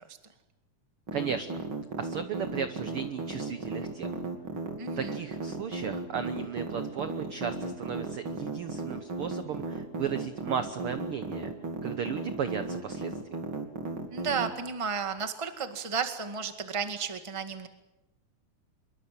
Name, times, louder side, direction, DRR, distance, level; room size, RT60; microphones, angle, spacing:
sound 1, 1.1-14.5, right 3 dB, 40° right, 3.3 m, -35 dB
voice 1, 1.1-1.6 2.0-4.2 5.0-11.5 11.8-13.1, right 7 dB, 65° right, 10 dB, 1.4 m, -35 dB
voice 2, 4.8-5.2 14.1-17.7, right 6 dB, 15° right, 7 dB, 1.2 m, -33 dB
25.0 x 23.0 x 7.6 m, 0.95 s
omnidirectional pair, 3.7 m